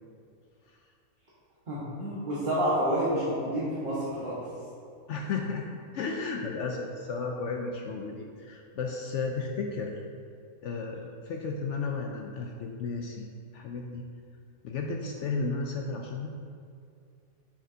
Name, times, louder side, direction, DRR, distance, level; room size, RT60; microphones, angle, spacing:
voice 1, 1.7-4.4, equal, 35° right, -10 dB, 1.5 m, -29 dB
voice 2, 5.1-5.7 5.9-9.9 10.6-13.3 13.5-14.0 14.6-16.3, left 4 dB, 65° left, 1 dB, 0.7 m, -33 dB
8.6 x 6.2 x 2.7 m, 2.3 s
omnidirectional pair, 1.6 m